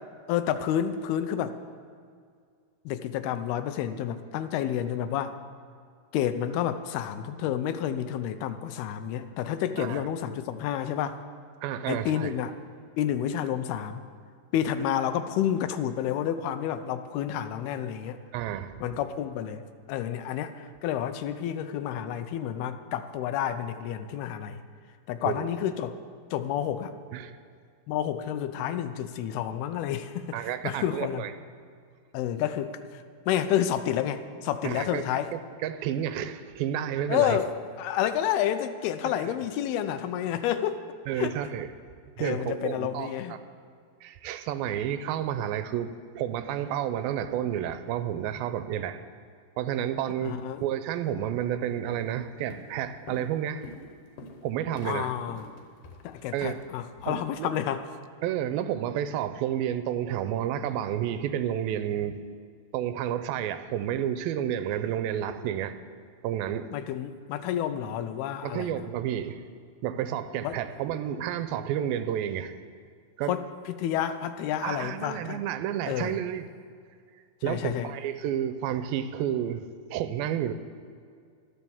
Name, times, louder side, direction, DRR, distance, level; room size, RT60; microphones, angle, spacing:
voice 1, 0.3-1.5 2.9-5.4 6.1-11.2 11.9-12.5 13.0-14.1 14.5-18.2 18.8-24.6 25.1-26.0 26.3-26.9 27.9-31.2 32.1-35.3 37.1-37.5 37.8-40.8 41.2-41.4 42.2-43.4 50.2-50.6 54.9-55.5 56.0-57.8 66.7-68.7 70.4-70.5 73.3-73.5 73.8-75.4 75.9-76.2 77.5-77.9, left 10 dB, 85° left, 10 dB, 2.7 m, -30 dB
voice 2, 11.6-12.3 18.3-18.7 25.3-25.5 27.1-27.4 30.3-31.3 34.6-35.0 35.3-37.4 39.0-39.4 41.1-41.7 42.2-43.4 44.0-49.0 49.6-53.6 54.4-55.1 56.3-56.6 57.0-57.5 58.2-62.2 62.7-65.8 66.2-66.7 68.4-69.4 69.8-72.5 73.2-73.3 74.6-76.4 77.4-80.5, right 10 dB, 80° right, 10 dB, 2.3 m, -30 dB
Walk footsteps, 51.3-51.5 51.9-52.2 52.5-57.1, left 3 dB, 65° left, 2.7 m, -47 dB
13.5 x 10.5 x 7.1 m, 2.2 s
omnidirectional pair, 4.4 m